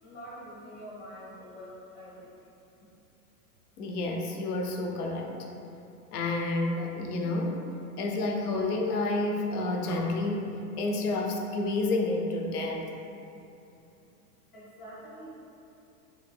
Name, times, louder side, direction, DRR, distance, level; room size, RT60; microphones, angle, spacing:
voice 1, 0.0-2.3 14.5-15.3, equal, 20° left, -9 dB, 1.0 m, -45 dB
voice 2, 3.8-5.3 6.1-7.6 8.0-12.8, left 2 dB, 65° left, 1 dB, 0.5 m, -29 dB
3.5 x 2.2 x 2.2 m, 2.8 s
figure-of-eight pair, 90°, 49 cm